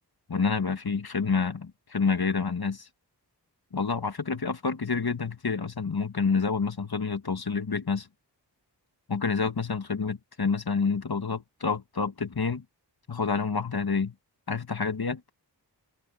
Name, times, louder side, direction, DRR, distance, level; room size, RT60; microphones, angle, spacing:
voice 1, 0.3-2.9 3.7-8.1 9.1-12.6 13.1-14.1 14.5-15.2, left 5 dB, 60° left, 1.7 m, -28 dB
open air
wide cardioid pair, 60°, 42 cm